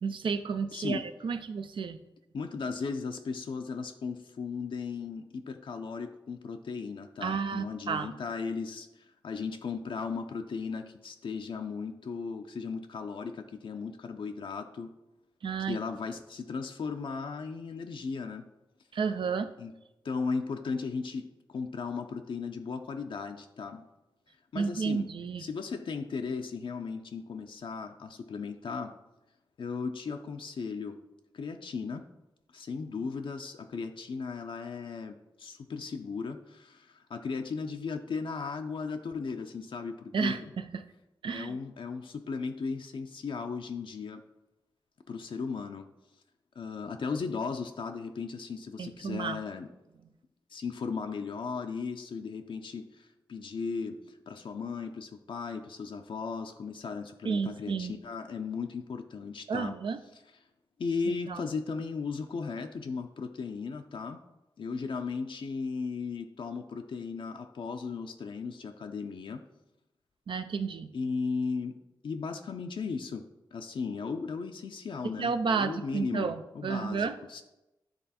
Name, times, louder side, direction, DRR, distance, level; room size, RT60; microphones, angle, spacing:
voice 1, 0.0-2.0 7.2-8.1 15.4-15.8 18.9-19.5 24.5-25.4 40.1-40.9 41.2-41.6 48.8-49.4 57.2-57.9 59.5-60.0 61.3-61.4 70.3-70.9 75.2-77.2, right 5 dB, 70° right, 9 dB, 0.5 m, -31 dB
voice 2, 0.7-1.1 2.3-8.9 9.2-14.9 15.7-18.4 19.6-19.7 20.0-23.8 24.5-25.1 25.4-28.9 29.6-31.0 31.3-32.1 32.5-40.5 41.3-44.2 45.1-45.9 46.6-49.7 50.5-59.8 60.8-64.2 64.6-69.4 70.9-77.4, left 5 dB, 70° left, 5 dB, 0.5 m, -36 dB
9.6 x 3.3 x 4.2 m, 0.95 s
cardioid pair, 60°, 9 cm